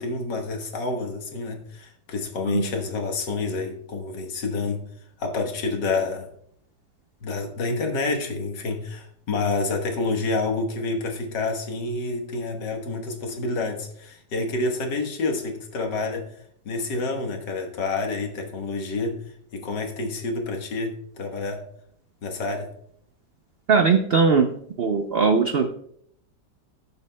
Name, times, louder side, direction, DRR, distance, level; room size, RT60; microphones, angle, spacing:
voice 1, 0.0-4.8 5.2-6.3 7.2-16.3 16.7-19.2 19.5-21.6 22.2-22.7, left 3 dB, 80° left, 3 dB, 1.9 m, -28 dB
voice 2, 23.7-24.5 24.8-25.7, right 5 dB, 90° right, 6 dB, 0.5 m, -19 dB
18.0 x 6.9 x 2.2 m, 0.68 s
omnidirectional pair, 1.8 m